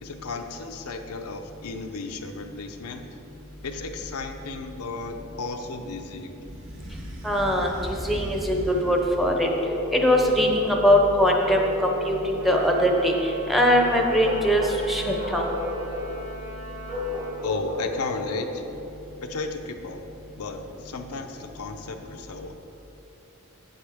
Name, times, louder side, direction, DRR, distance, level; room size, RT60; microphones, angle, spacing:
voice 1, 0.0-3.1 3.6-6.4 17.4-18.6 19.2-20.0 20.4-22.6, left 3 dB, 85° left, 5 dB, 0.6 m, -34 dB
sound 1, 6.4-9.4 10.0-10.9, equal, 60° right, 1.2 m, -39 dB
voice 2, 7.2-9.5 9.9-13.1 13.5-15.5, equal, ahead, 1 dB, 0.6 m, -21 dB
Bark, 9.4-11.0 11.4-13.2 13.8-14.8 15.1-16.1 16.9-18.5, left 1 dB, 35° right, 1.1 m, -33 dB
Trumpet, 12.4-17.4, right 2 dB, 80° right, 1.3 m, -42 dB
7.9 x 7.9 x 3.5 m, 2.9 s
head